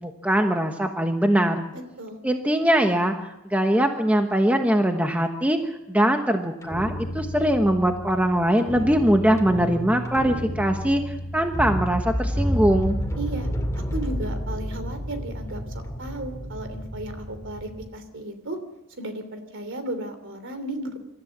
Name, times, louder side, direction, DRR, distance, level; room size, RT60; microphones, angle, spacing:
voice 1, 0.0-1.6 2.2-5.6 5.9-13.0, right 1 dB, 5° right, 5 dB, 1.1 m, -22 dB
voice 2, 1.7-2.2 13.2-13.5 13.9-18.6 19.0-21.0, right 1 dB, 60° right, 9 dB, 3.2 m, -34 dB
sound 1, 6.6-17.9, equal, 15° left, 2.5 m, -30 dB
26.5 x 14.0 x 7.3 m, 0.95 s
head